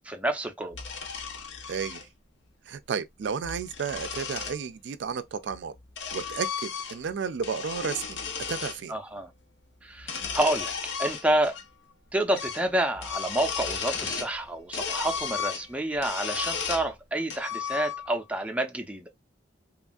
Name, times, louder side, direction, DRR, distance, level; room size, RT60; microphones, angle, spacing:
voice 1, 0.1-0.8 8.9-9.3 9.8-10.7 11.0-11.6 12.1-19.1, right 1 dB, 5° right, 0.5 m, -28 dB
sound 1, 0.7-2.0 3.3-4.6 5.5-7.1 7.4-8.8 10.0-11.6 11.9-12.0 12.3-12.7 12.9-14.4 14.7-16.9 17.3-18.2, left 6 dB, 90° left, 0.7 m, -34 dB
voice 2, 1.7-2.0 2.7-5.7 6.1-8.2 8.5-8.9, right 6 dB, 75° right, 0.4 m, -32 dB
2.9 x 2.3 x 2.5 m
head